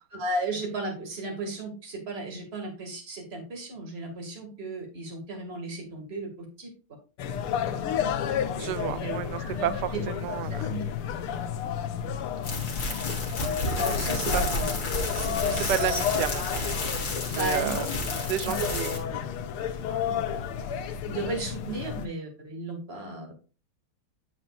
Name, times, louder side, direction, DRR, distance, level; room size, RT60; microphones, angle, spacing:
voice 1, 0.1-6.7 8.5-10.0 10.4-10.8 13.8-14.8 15.1-16.0 17.3-18.0 18.3-18.9 20.1-20.2 21.1-23.3, right 2 dB, 30° right, 2 dB, 2.0 m, -35 dB
sound 1, 7.2-22.1, left 8 dB, 85° left, 1.7 m, -31 dB
voice 2, 8.6-10.6 14.3-14.4 15.7-16.8 17.2-18.9, right 12 dB, 75° right, 14 dB, 0.9 m, -31 dB
sound 2, 12.4-19.0, left 2 dB, 45° left, 2.0 m, -31 dB
9.1 x 7.4 x 2.4 m, 0.34 s
omnidirectional pair, 2.4 m